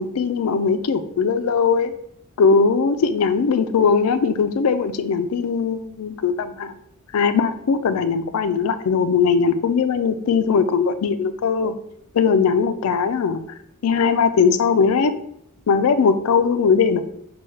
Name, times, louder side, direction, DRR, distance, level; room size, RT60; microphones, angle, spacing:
voice 1, 0.0-1.9 2.4-6.7 7.1-11.7 12.1-13.4 13.8-15.1 15.7-17.0, left 5 dB, 80° left, 10 dB, 0.4 m, -19 dB
5.6 x 2.3 x 3.1 m, 0.71 s
head